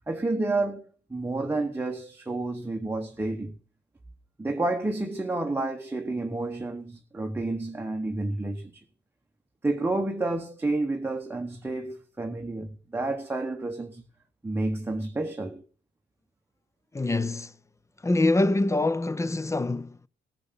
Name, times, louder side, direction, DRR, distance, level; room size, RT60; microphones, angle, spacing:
voice 1, 0.1-3.6 4.4-8.7 9.6-14.1 14.4-15.6, right 2 dB, 10° right, 0.9 m, -30 dB
voice 2, 16.9-17.5 18.0-20.0, left 2 dB, 15° left, 0.5 m, -25 dB
15.0 x 6.8 x 5.6 m
cardioid pair, 90°, 20 cm